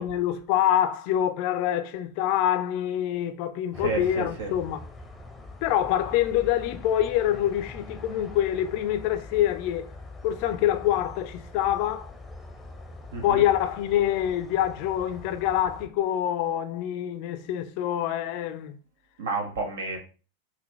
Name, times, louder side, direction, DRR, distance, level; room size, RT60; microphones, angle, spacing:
voice 1, 0.0-4.8 5.6-9.9 10.2-12.1 13.2-18.7, left 11 dB, 45° left, 0.5 m, -25 dB
sound 1, 3.7-15.9, left 2 dB, 5° left, 0.8 m, -44 dB
voice 2, 3.7-4.5 13.1-13.4 19.2-20.0, right 4 dB, 60° right, 1.4 m, -31 dB
5.9 x 2.9 x 3.1 m
figure-of-eight pair, 90°, 0 cm